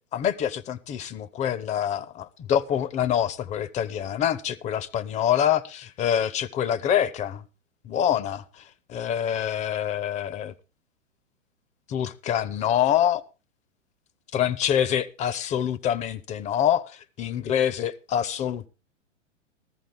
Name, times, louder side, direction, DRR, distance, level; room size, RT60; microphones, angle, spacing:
voice 1, 0.1-7.4 7.8-8.4 8.9-10.5 11.9-13.2 14.3-18.7, left 10 dB, 20° left, 0.6 m, -25 dB
14.5 x 14.0 x 3.5 m
figure-of-eight pair, 110°, 37 cm